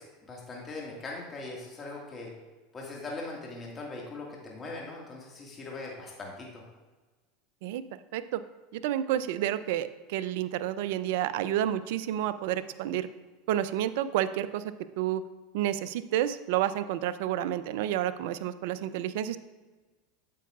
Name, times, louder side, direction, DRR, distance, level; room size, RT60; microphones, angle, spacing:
voice 1, 0.0-2.3 2.7-6.6, left 3 dB, 30° left, -2 dB, 1.8 m, -40 dB
voice 2, 8.7-13.1 13.5-14.6 15.0-15.2 15.5-19.4, right 12 dB, 70° right, 14 dB, 0.4 m, -30 dB
9.2 x 7.9 x 2.4 m, 1.3 s
hypercardioid pair, 95°, 0 cm